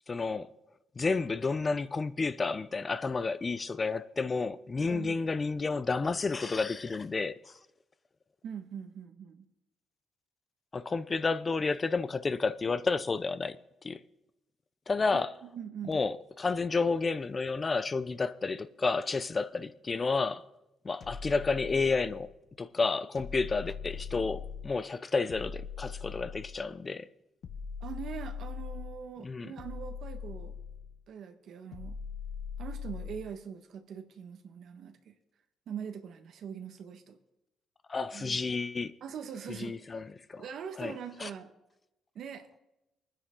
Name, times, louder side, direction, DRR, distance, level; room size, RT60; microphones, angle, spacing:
voice 1, 0.1-0.5 1.0-7.4 10.7-13.6 13.8-14.0 14.9-15.3 15.9-20.4 20.8-22.3 22.6-27.1 29.2-29.5 37.9-38.9 39.6-40.4 40.8-40.9 41.2-41.3, left 4 dB, 30° left, 0.7 m, -31 dB
voice 2, 4.8-5.2 8.4-9.4 15.4-16.0 27.8-30.5 31.1-32.0 32.6-35.1 35.7-37.2 38.1-38.4 39.0-39.8 40.3-41.5 42.1-42.6, right 7 dB, 70° right, 1.4 m, -42 dB
sound 1, 21.0-22.3 23.2-24.8 25.3-26.7 27.4-29.0 29.6-31.0 31.7-33.3, left 6 dB, 60° left, 1.2 m, -41 dB
24.5 x 10.0 x 3.8 m
cardioid pair, 90°, 0 cm